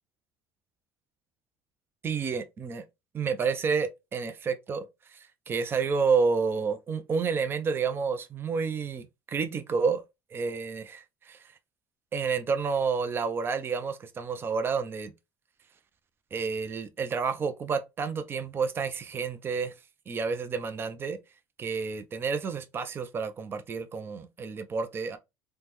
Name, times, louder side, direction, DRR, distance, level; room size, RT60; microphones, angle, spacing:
voice 1, 2.0-2.8 3.1-10.0 10.3-11.4 12.1-15.1 16.3-19.7 20.1-21.2 21.6-25.2, right 5 dB, 25° right, 0.4 m, -30 dB
3.5 x 2.1 x 2.9 m
cardioid pair, 135°, 9 cm